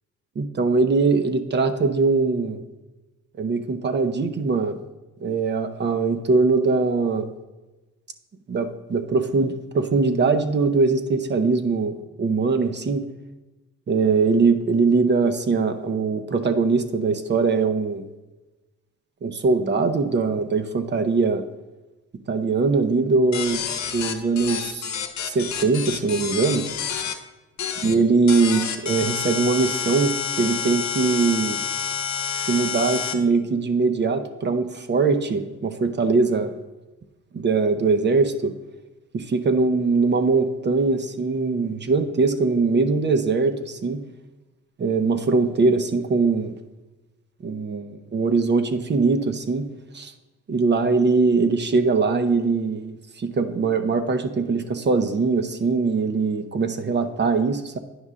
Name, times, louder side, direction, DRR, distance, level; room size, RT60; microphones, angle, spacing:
voice 1, 0.4-2.6 3.4-4.8 5.2-7.3 8.5-13.1 13.9-18.0 19.2-21.4 22.3-23.6 23.9-24.9 25.2-26.7 27.8-31.6 32.4-36.5 37.3-38.5 39.1-44.0 44.8-46.5 47.4-49.7 49.9-50.1 50.5-57.8, right 4 dB, 35° right, 9 dB, 0.7 m, -21 dB
sound 1, 23.3-27.1 27.6-27.9 28.3-33.1, left 7 dB, 65° left, 0.9 m, -28 dB
9.6 x 5.4 x 3.7 m, 1.1 s
cardioid pair, 90°, 30 cm